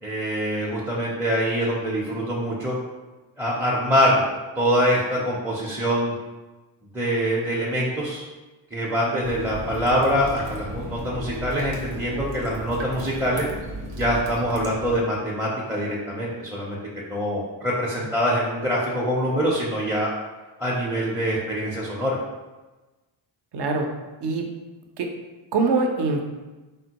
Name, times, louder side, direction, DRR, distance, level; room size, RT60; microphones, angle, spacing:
voice 1, 0.0-2.8 3.4-4.2 4.6-6.1 6.9-8.2 8.7-13.5 14.0-16.8 17.1-20.1 20.6-22.2, equal, 5° right, -6 dB, 0.5 m, -24 dB
sound 1, 9.2-15.0, right 1 dB, 85° right, 0.8 m, -35 dB
voice 2, 23.5-23.9 24.2-24.5 25.0-25.1 25.5-26.2, right 3 dB, 55° right, 3 dB, 0.6 m, -23 dB
3.5 x 2.2 x 2.8 m, 1.2 s
cardioid pair, 60°, 50 cm